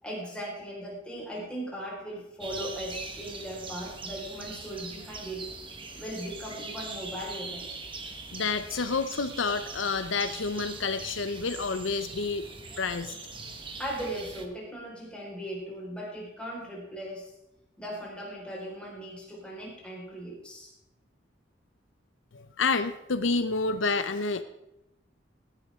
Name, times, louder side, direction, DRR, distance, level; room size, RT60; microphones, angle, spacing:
voice 1, 0.0-5.5 5.9-7.6 13.8-17.3 17.8-20.7, equal, 5° left, -5 dB, 4.7 m, -38 dB
sound 1, 2.4-14.5, right 3 dB, 30° right, 1.3 m, -41 dB
voice 2, 8.3-12.5 12.8-13.1 22.3-24.4, left 4 dB, 80° left, 11 dB, 0.7 m, -29 dB
16.0 x 11.5 x 3.7 m, 0.86 s
head